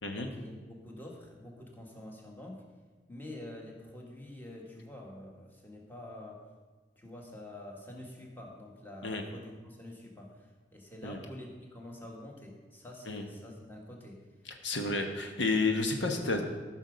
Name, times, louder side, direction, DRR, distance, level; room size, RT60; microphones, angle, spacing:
voice 1, 0.2-2.6 3.1-6.4 7.0-14.2, left 1 dB, 10° left, 0 dB, 1.6 m, -47 dB
voice 2, 14.4-16.4, left 3 dB, 80° left, 4 dB, 1.1 m, -31 dB
13.5 x 6.2 x 5.1 m, 1.3 s
head